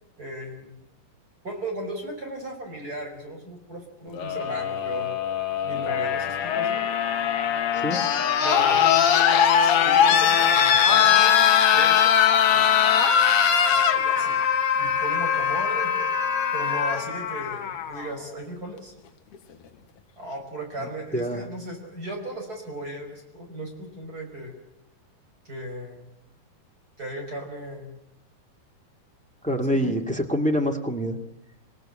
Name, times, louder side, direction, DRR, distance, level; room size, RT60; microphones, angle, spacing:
voice 1, 0.2-0.8 1.4-5.2 5.6-6.8 8.4-9.0 9.8-11.3 11.7-12.2 12.5-13.2 13.6-14.4 14.7-16.0 16.5-18.9 20.2-24.5 25.5-26.1 27.0-28.0 29.7-29.9, right 1 dB, 25° right, 2 dB, 5.2 m, -36 dB
sound 1, 4.1-18.1 19.3-19.4, left 8 dB, 60° left, 1.8 m, -21 dB
voice 2, 29.4-31.2, equal, 5° left, 3 dB, 1.0 m, -25 dB
26.5 x 18.0 x 8.8 m, 0.86 s
omnidirectional pair, 3.9 m